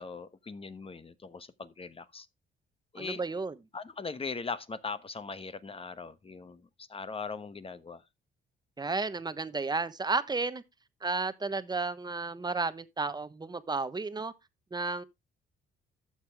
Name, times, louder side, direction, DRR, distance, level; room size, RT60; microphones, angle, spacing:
voice 1, 0.0-2.3 2.9-3.2 3.7-8.0, left 4 dB, 30° left, 1.1 m, -40 dB
voice 2, 3.0-3.5 8.8-10.6 11.0-14.3 14.7-15.0, right 3 dB, 20° right, 1.0 m, -32 dB
12.5 x 7.2 x 3.5 m
cardioid pair, 90°, 20 cm